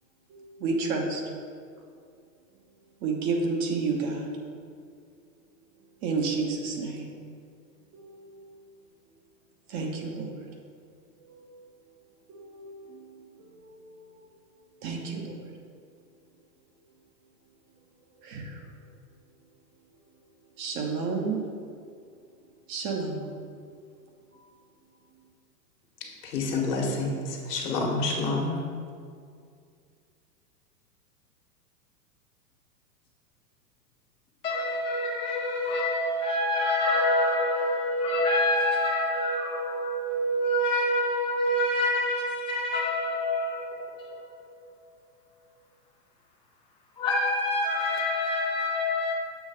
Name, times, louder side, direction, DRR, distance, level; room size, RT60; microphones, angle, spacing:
voice 1, 0.3-1.2 3.0-4.3 6.0-7.1 7.9-8.1 9.7-10.3 11.3-11.4 12.3-13.3 13.8-13.9 14.8-15.4 18.2-18.5 20.6-21.4 22.7-23.3, right 4 dB, 35° right, 1 dB, 1.0 m, -30 dB
voice 2, 26.2-28.6, left 3 dB, 70° left, -1 dB, 1.5 m, -28 dB
voice 3, 34.4-44.5 47.0-49.1, left 1 dB, 10° left, -4 dB, 0.5 m, -26 dB
7.1 x 3.2 x 5.6 m, 2.3 s
hypercardioid pair, 110°, 49 cm